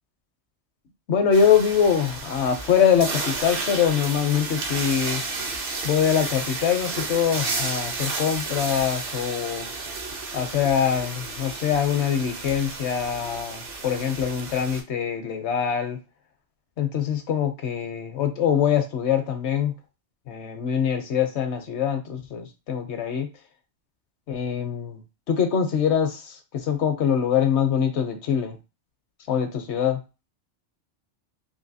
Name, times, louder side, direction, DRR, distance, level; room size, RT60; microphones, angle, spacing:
voice 1, 1.1-5.2 5.8-9.7 10.3-16.0 16.8-19.7 20.3-23.3 24.3-25.0 25.3-28.6 29.3-30.0, left 8 dB, 70° left, 0.9 m, -23 dB
sound 1, 1.3-14.8, right 3 dB, 55° right, 0.8 m, -32 dB
3.3 x 2.6 x 2.7 m
omnidirectional pair, 1.2 m